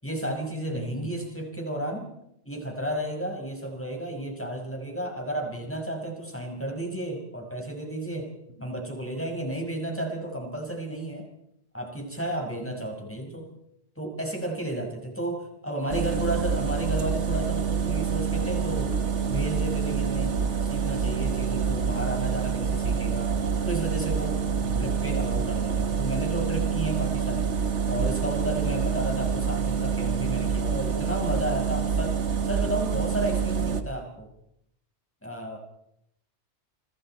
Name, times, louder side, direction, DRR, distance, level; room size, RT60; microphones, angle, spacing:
voice 1, 0.0-2.1 2.5-8.3 8.6-11.3 11.7-13.5 14.0-18.9 19.3-23.3 23.6-24.4 24.8-27.5 27.8-32.2 32.4-34.3 35.2-35.6, right 1 dB, 10° left, 2 dB, 5.4 m, -32 dB
voice 2, 0.7-1.1 8.6-8.7 12.7-12.8 24.5-24.9, right 1 dB, 60° right, -1 dB, 4.1 m, -40 dB
sound 1, 15.9-33.8, right 6 dB, 80° right, 1.8 m, -27 dB
29.5 x 25.5 x 4.5 m, 0.80 s
omnidirectional pair, 1.2 m